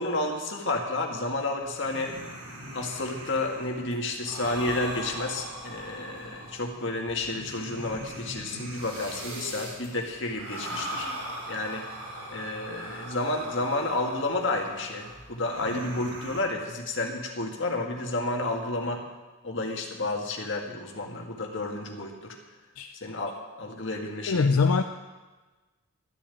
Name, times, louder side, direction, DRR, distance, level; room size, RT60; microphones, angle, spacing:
voice 1, 0.0-2.1 2.7-11.1 11.5-11.9 12.3-19.0 19.4-22.4 23.0-24.5, left 2 dB, 55° left, 2 dB, 1.8 m, -31 dB
sound 1, 1.6-16.4, right 1 dB, 85° right, 3.9 m, -40 dB
voice 2, 24.3-24.8, left 4 dB, 85° left, 6 dB, 0.5 m, -22 dB
12.5 x 7.3 x 8.5 m, 1.2 s
head